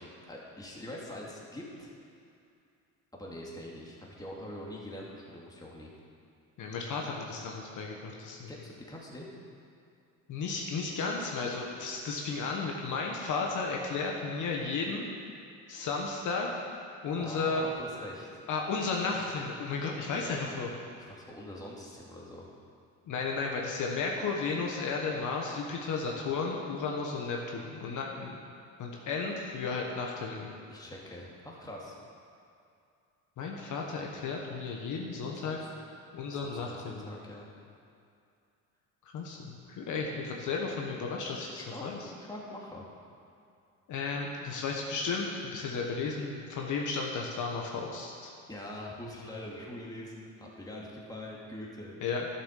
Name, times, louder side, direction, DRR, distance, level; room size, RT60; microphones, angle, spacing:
voice 1, 0.0-1.9 3.1-5.9 8.5-9.3 17.2-18.3 20.1-20.3 21.0-22.5 30.7-32.0 35.4-35.6 36.3-37.5 41.6-41.9 42.3-42.9 48.5-51.9, left 1 dB, 10° left, -3 dB, 2.5 m, -44 dB
voice 2, 6.6-8.5 10.3-15.1 15.7-16.5 17.0-17.7 18.5-20.7 23.1-28.4 28.8-30.5 33.4-35.6 36.1-37.1 39.1-42.1 43.9-48.3 52.0-52.3, left 4 dB, 60° left, 0 dB, 1.5 m, -34 dB
11.5 x 7.3 x 6.6 m, 2.5 s
supercardioid pair, 95°, 34 cm